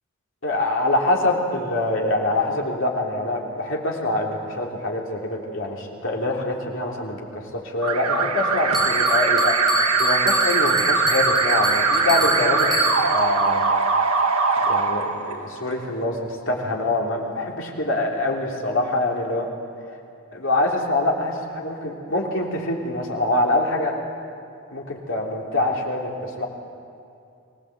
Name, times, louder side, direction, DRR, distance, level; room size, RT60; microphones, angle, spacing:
voice 1, 0.4-13.7 14.7-19.5 20.3-23.9 24.7-26.5, left 2 dB, 60° left, -1 dB, 3.3 m, -25 dB
Alarm, 7.8-15.7, right 4 dB, 90° right, 1.7 m, -21 dB
Bell, 8.7-13.3, left 2 dB, ahead, 4.8 m, -28 dB
24.0 x 18.5 x 8.0 m, 2.5 s
head